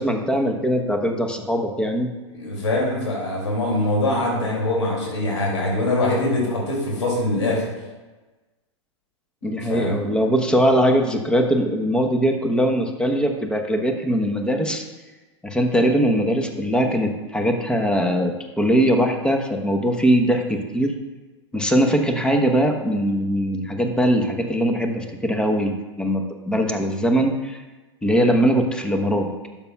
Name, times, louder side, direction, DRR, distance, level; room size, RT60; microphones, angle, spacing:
voice 1, 0.0-2.1 9.4-14.8 15.4-21.0 21.5-27.6 28.0-29.3, equal, 5° left, 4 dB, 1.0 m, -21 dB
voice 2, 2.3-7.6 9.7-10.0, left 2 dB, 75° left, -3 dB, 2.6 m, -23 dB
12.0 x 7.1 x 2.3 m, 1.2 s
hypercardioid pair, 100°, 15 cm